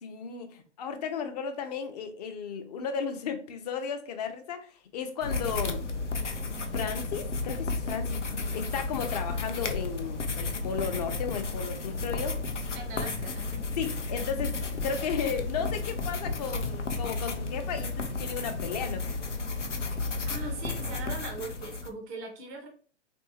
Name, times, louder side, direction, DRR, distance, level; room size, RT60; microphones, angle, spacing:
voice 1, 0.0-5.8 6.7-8.2 8.5-12.4 13.8-19.1, left 6 dB, 35° left, 7 dB, 0.5 m, -34 dB
sound 1, 5.2-21.9, left 3 dB, 90° left, 0.5 m, -33 dB
voice 2, 12.7-13.6 20.3-22.7, right 3 dB, 15° right, 3 dB, 0.3 m, -40 dB
3.2 x 2.6 x 2.7 m, 0.41 s
figure-of-eight pair, 105°, 35 cm